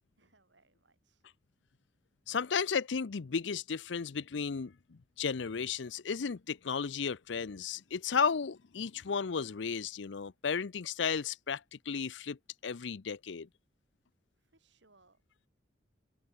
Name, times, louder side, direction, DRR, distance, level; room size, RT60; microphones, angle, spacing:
voice 1, 0.2-1.2 14.4-15.2, right 3 dB, 70° right, 6.2 m, -68 dB
voice 2, 2.3-4.7 5.2-11.6 11.9-12.4 12.6-13.5, left 6 dB, 70° left, 0.6 m, -34 dB
head